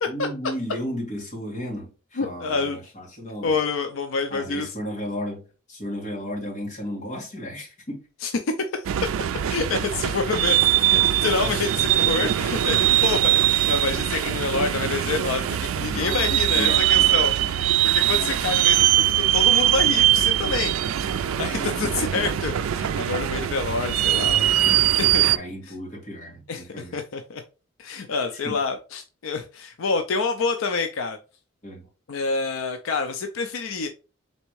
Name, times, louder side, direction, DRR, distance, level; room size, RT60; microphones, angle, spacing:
voice 1, 0.1-3.6 4.3-8.0 11.4-11.7 15.9-17.6 18.0-18.6 21.4-22.4 24.6-24.9 25.3-27.0 28.3-28.6 31.6-31.9, equal, 35° left, 1.9 m, -34 dB
voice 2, 2.2-2.8 3.4-4.7 8.2-8.3 8.6-8.8 9.5-10.6 10.8-20.8 21.1-25.3 26.5-27.4 27.8-31.2 32.1-33.9, left 4 dB, 75° left, 0.5 m, -27 dB
sound 1, 8.8-25.4, right 13 dB, 80° right, 0.3 m, -21 dB
4.1 x 3.5 x 3.1 m
head